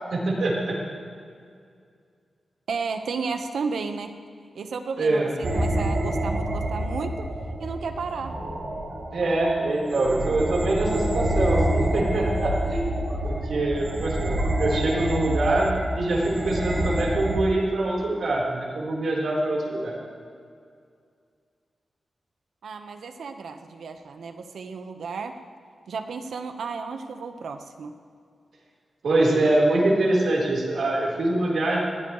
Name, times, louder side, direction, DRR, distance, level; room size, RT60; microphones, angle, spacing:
voice 1, 0.1-0.8 5.0-5.3 9.1-19.9 29.0-31.8, right 2 dB, 65° right, -3 dB, 4.1 m, -24 dB
voice 2, 2.7-4.1 4.5-7.3 7.6-8.3 22.6-25.3 25.9-27.9, right 5 dB, 80° right, 6 dB, 1.1 m, -33 dB
sound 1, 5.4-17.4, right 1 dB, 50° right, 3.8 m, -27 dB
21.5 x 15.5 x 3.2 m, 2.3 s
wide cardioid pair, 175°, 0 cm